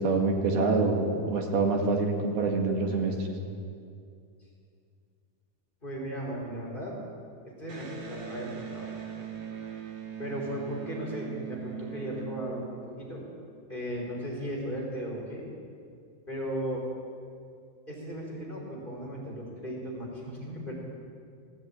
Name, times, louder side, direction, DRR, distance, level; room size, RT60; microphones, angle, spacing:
voice 1, 0.0-3.2, right 3 dB, 75° right, 2 dB, 3.7 m, -26 dB
voice 2, 5.8-7.0 7.4-8.9 10.2-13.2 13.7-15.4 16.3-16.8 17.9-20.7, equal, 10° left, -3 dB, 4.9 m, -36 dB
Electric guitar, 7.7-13.1, right 7 dB, 45° right, 2.4 m, -40 dB
18.0 x 17.0 x 9.1 m, 2.4 s
omnidirectional pair, 4.6 m